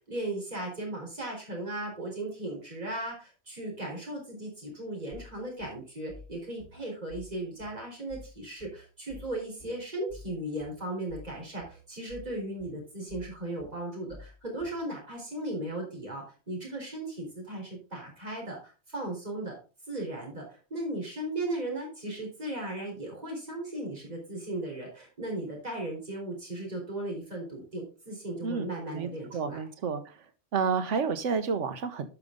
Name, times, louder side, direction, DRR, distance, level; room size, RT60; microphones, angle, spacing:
voice 1, 0.1-19.5 19.9-29.6, right 1 dB, 35° right, -1 dB, 3.9 m, -36 dB
sound 1, 5.1-14.9, left 2 dB, 85° left, 4.4 m, -50 dB
voice 2, 28.4-30.2 30.5-32.1, right 5 dB, 85° right, 10 dB, 1.3 m, -30 dB
12.0 x 5.3 x 3.7 m, 0.34 s
omnidirectional pair, 1.2 m